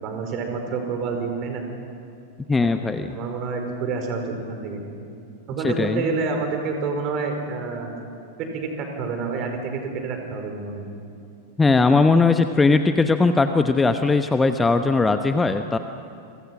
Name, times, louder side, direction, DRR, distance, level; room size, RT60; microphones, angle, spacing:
voice 1, 0.0-1.6 2.6-2.7 3.1-4.2 4.5-4.8 5.5-7.9 8.4-9.7 10.0-10.9, right 4 dB, 40° right, 4 dB, 5.1 m, -28 dB
voice 2, 2.5-3.1 5.6-6.0 11.6-15.8, left 3 dB, 10° left, 8 dB, 1.0 m, -19 dB
29.0 x 25.0 x 6.1 m, 2.6 s
figure-of-eight pair, 90°, 0 cm